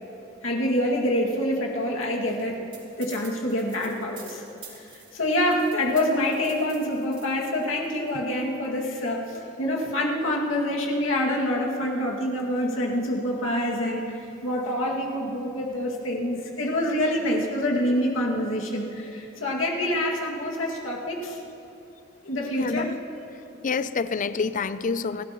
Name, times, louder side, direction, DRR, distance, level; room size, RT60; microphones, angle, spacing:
voice 1, 0.4-2.6 3.0-4.4 4.8-14.1 14.4-21.4 22.2-22.9, left 1 dB, 90° left, -2 dB, 2.2 m, -26 dB
sound 1, 2.7-8.1, right 5 dB, 30° right, 3.3 m, -47 dB
voice 2, 22.6-23.0 23.6-25.2, left 4 dB, 40° left, 14 dB, 0.5 m, -27 dB
30.0 x 12.5 x 3.1 m, 2.9 s
head